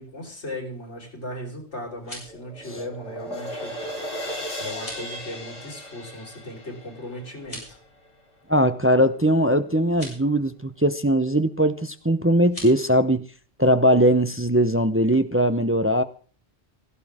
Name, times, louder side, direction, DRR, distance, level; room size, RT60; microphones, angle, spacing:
voice 1, 0.0-4.0 4.6-7.8, left 1 dB, 90° left, 5.0 m, -37 dB
sound 1, 1.8-2.4 4.7-5.1 7.4-7.8 9.8-10.2 12.4-12.7, left 1 dB, 30° left, 6.7 m, -40 dB
sound 2, 1.9-8.1, equal, 55° left, 3.4 m, -36 dB
voice 2, 8.5-13.2 13.6-16.0, equal, 15° right, 0.6 m, -20 dB
16.5 x 15.0 x 3.6 m
omnidirectional pair, 1.1 m